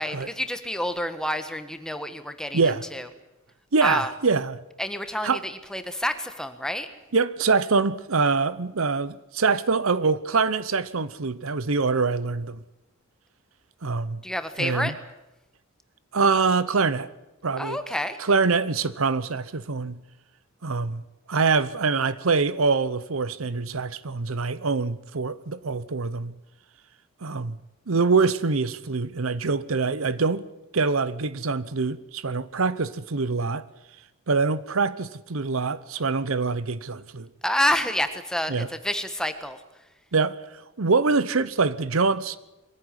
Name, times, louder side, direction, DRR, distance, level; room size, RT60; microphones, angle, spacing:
voice 1, 0.0-3.1 3.8-4.1 4.8-6.9 14.2-15.0 17.6-18.2 37.4-39.6, left 1 dB, 5° left, 1.5 m, -28 dB
voice 2, 3.7-4.6 5.2-5.4 7.1-12.6 13.8-14.2 14.6-14.9 16.1-17.1 17.4-17.8 18.2-20.0 20.6-21.0 21.3-26.3 27.2-27.6 27.9-30.5 30.7-33.6 34.3-37.3 38.5-38.7 40.1-42.4, right 4 dB, 80° right, 0.9 m, -24 dB
22.5 x 15.5 x 9.9 m
head